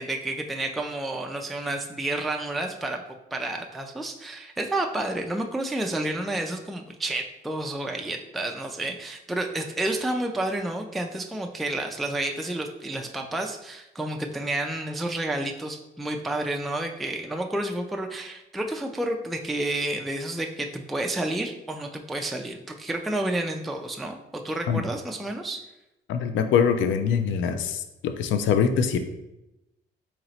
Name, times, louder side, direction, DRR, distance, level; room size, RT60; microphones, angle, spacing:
voice 1, 0.0-3.0 3.3-25.6, right 1 dB, ahead, 3 dB, 0.3 m, -30 dB
voice 2, 26.1-29.0, left 7 dB, 75° left, 8 dB, 0.4 m, -23 dB
2.9 x 2.9 x 4.1 m, 0.92 s
cardioid pair, 90°, 20 cm